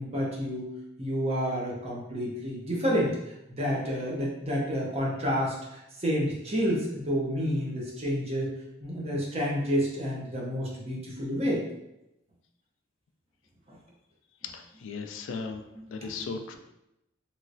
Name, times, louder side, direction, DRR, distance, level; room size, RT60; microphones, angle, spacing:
voice 1, 0.0-11.6 13.7-13.8 15.3-15.4 15.7-16.3, equal, 30° right, -3 dB, 0.7 m, -30 dB
voice 2, 14.5-15.6 15.9-16.6, left 4 dB, 70° left, 5 dB, 0.3 m, -37 dB
3.0 x 3.0 x 2.5 m, 0.88 s
head